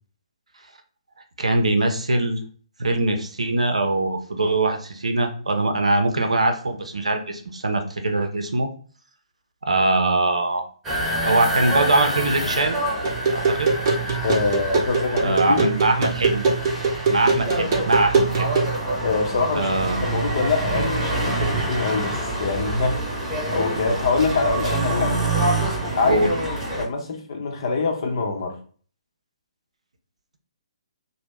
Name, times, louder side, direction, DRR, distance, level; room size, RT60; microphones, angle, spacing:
voice 1, 1.4-2.4 2.8-8.7 9.6-10.6 11.2-12.8 13.3-13.7 15.2-16.5 17.1-18.5 19.5-20.1 26.1-26.3, right 2 dB, 70° right, 5 dB, 0.6 m, -22 dB
sound 1, 10.8-26.8, right 1 dB, 10° right, 1.0 m, -26 dB
sound 2, 13.0-18.8, right 4 dB, 35° right, 0.9 m, -23 dB
voice 2, 14.2-15.7 19.0-19.7 20.0-23.0 23.5-25.2 25.9-28.6, left 4 dB, 50° left, 2 dB, 0.8 m, -24 dB
2.9 x 2.1 x 3.4 m, 0.43 s
figure-of-eight pair, 130°, 3 cm